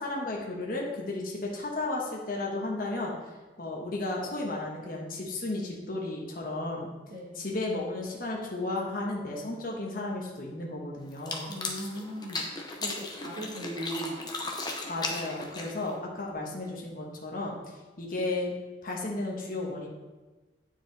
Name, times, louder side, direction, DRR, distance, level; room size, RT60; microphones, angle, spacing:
voice 1, 0.0-3.1 3.6-6.9 7.3-11.5 14.9-17.6 18.0-18.5 18.8-19.9, left 2 dB, 50° left, -2 dB, 1.2 m, -33 dB
voice 2, 7.1-7.4 11.5-12.4 12.8-14.2, right 1 dB, 85° right, -6 dB, 1.8 m, -38 dB
sound 1, 11.1-16.0, left 3 dB, 25° left, 0.8 m, -36 dB
9.3 x 4.7 x 4.0 m, 1.2 s
head